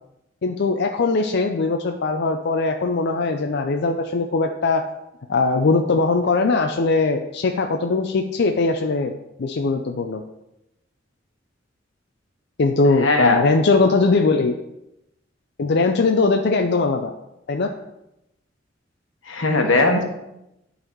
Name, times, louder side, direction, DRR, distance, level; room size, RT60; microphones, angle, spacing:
voice 1, 0.4-4.8 5.3-9.1 9.4-10.2 12.6-14.5 15.6-17.1 17.5-17.7, left 3 dB, 60° left, 4 dB, 0.5 m, -20 dB
voice 2, 13.0-13.4 19.3-20.0, left 2 dB, 90° left, 3 dB, 1.3 m, -18 dB
10.5 x 4.1 x 4.5 m, 0.88 s
head